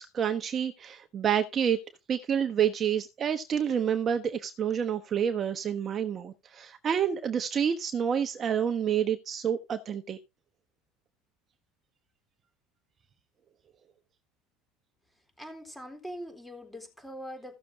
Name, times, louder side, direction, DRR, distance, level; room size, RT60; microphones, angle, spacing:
voice 1, 0.0-1.8 2.1-10.2, right 8 dB, 35° right, 1.1 m, -28 dB
voice 2, 15.4-17.6, equal, 5° left, 3.7 m, -42 dB
16.0 x 6.9 x 3.7 m
supercardioid pair, 125°, 0 cm